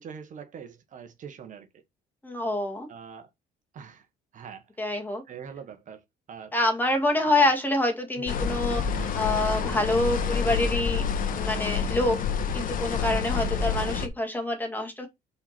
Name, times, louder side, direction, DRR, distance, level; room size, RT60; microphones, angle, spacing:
voice 1, 0.0-1.8 2.9-3.3 3.7-4.1 4.3-4.6 5.3-6.0 6.3-6.5 7.2-7.4 8.2-8.3 13.3-13.6, right 7 dB, 50° right, 1.4 m, -43 dB
voice 2, 2.2-2.9 4.8-5.2 6.5-11.1 11.3-12.2 12.5-15.1, left 2 dB, 10° left, 2.2 m, -26 dB
sound 1, 8.3-14.1, left 6 dB, 55° left, 1.3 m, -28 dB
5.6 x 4.3 x 6.0 m
cardioid pair, 110°, 17 cm